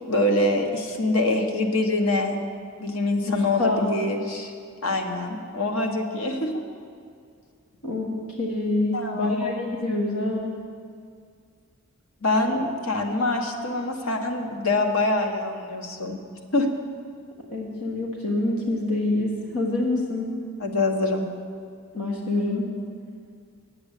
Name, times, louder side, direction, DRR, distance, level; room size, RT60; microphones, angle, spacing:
voice 1, 0.1-2.4 2.8-4.5 4.8-6.6 8.9-9.4 12.2-16.2 16.5-16.7 20.6-21.2, left 2 dB, 70° left, 3 dB, 1.2 m, -25 dB
voice 2, 3.3-3.8 7.8-10.6 17.5-20.4 21.9-22.7, left 2 dB, 85° left, -1 dB, 1.5 m, -26 dB
9.2 x 7.7 x 8.2 m, 2.3 s
head